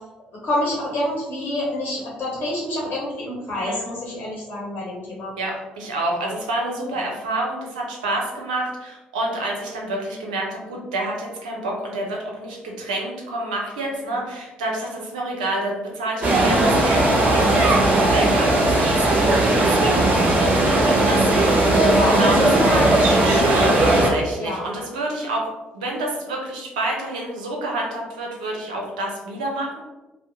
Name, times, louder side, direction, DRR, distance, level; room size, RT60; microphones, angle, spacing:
voice 1, 0.4-5.3 6.9-7.0 17.9-18.1 20.8-22.7 24.4-24.6, left 1 dB, 55° left, -4 dB, 0.9 m, -28 dB
voice 2, 3.5-3.9 5.4-21.3 22.1-25.5 25.7-29.8, right 2 dB, 85° right, -1 dB, 0.6 m, -28 dB
sound 1, 16.2-24.1, right 1 dB, 40° right, 0.9 m, -17 dB
2.6 x 2.0 x 3.6 m, 1.1 s
hypercardioid pair, 50°, 4 cm